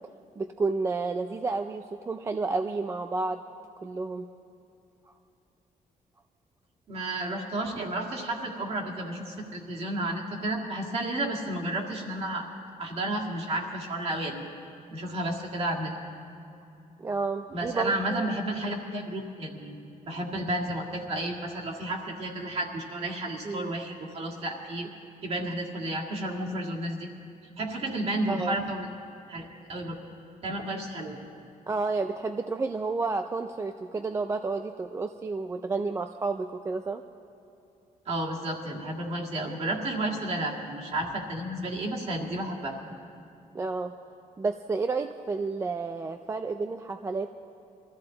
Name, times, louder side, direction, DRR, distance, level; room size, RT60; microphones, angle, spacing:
voice 1, 0.4-3.4 3.8-4.3 17.0-18.3 23.4-23.7 28.3-28.6 31.7-37.0 43.5-43.9 44.4-47.3, right 3 dB, 20° right, 6 dB, 0.3 m, -30 dB
voice 2, 6.9-12.5 12.8-14.5 14.9-15.9 17.5-19.8 20.1-24.9 25.2-27.1 27.6-28.9 29.3-30.0 30.4-31.2 38.1-42.8, right 1 dB, 45° right, -1 dB, 1.8 m, -32 dB
23.0 x 13.5 x 3.9 m, 2.7 s
wide cardioid pair, 175°, 14 cm